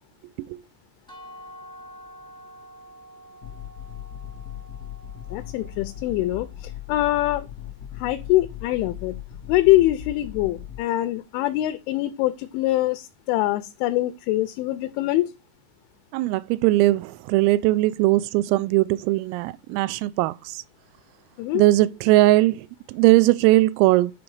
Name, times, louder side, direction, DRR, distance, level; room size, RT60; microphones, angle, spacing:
sound 1, 1.1-6.9, equal, 5° left, 0.3 m, -47 dB
sound 2, 3.4-10.8, left 10 dB, 65° left, 1.6 m, -38 dB
voice 1, 5.3-7.5 8.0-9.2 9.5-15.3 21.4-21.6, left 16 dB, 85° left, 2.8 m, -23 dB
voice 2, 16.1-20.6 21.5-24.1, right 17 dB, 85° right, 3.3 m, -20 dB
10.5 x 5.2 x 4.7 m
omnidirectional pair, 5.9 m